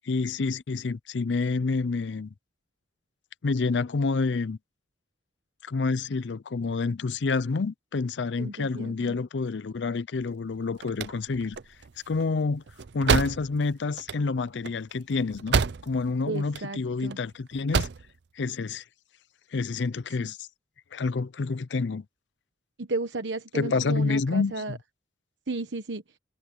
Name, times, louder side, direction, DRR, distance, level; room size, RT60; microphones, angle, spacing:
voice 1, 0.0-2.3 3.4-4.6 5.6-11.6 12.1-12.6 12.9-17.9 18.4-18.8 19.5-20.5 20.9-22.0 23.5-24.8, left 4 dB, 80° left, 0.5 m, -28 dB
voice 2, 8.4-9.2 16.3-17.2 20.2-20.3 22.8-24.8 25.5-26.0, right 3 dB, 90° right, 1.2 m, -34 dB
sound 1, 10.5-16.1 16.4-17.2 17.5-18.1, right 5 dB, 65° right, 0.5 m, -29 dB
head